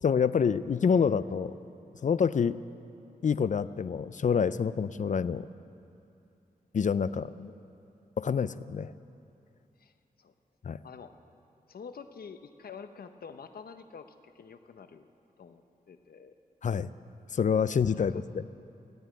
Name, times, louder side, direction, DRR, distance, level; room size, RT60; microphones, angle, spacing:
voice 1, 0.0-1.5 2.0-2.6 3.2-5.5 6.7-7.5 8.2-8.9 10.6-10.8 16.6-16.9 17.3-18.5, left 6 dB, 50° left, 16 dB, 0.5 m, -27 dB
voice 2, 10.8-11.2 11.7-15.1 15.4-15.6 15.9-16.4 17.9-18.2, left 6 dB, 75° left, 9 dB, 0.8 m, -47 dB
16.0 x 9.8 x 9.1 m, 2.7 s
wide cardioid pair, 75°, 16 cm